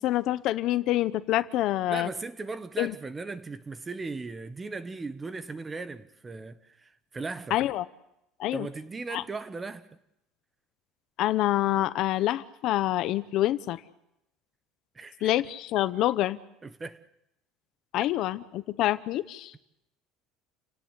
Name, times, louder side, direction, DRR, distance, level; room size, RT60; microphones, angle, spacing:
voice 1, 0.0-2.1 2.8-2.9 7.5-7.9 8.4-8.7 9.1-9.2 11.2-13.8 15.2-16.4 17.9-19.5, left 14 dB, 50° left, 0.9 m, -26 dB
voice 2, 1.9-7.6 8.5-9.9 14.9-15.3 16.6-17.0, right 3 dB, 15° right, 1.2 m, -37 dB
30.0 x 18.0 x 8.3 m
cardioid pair, 165°, 0 cm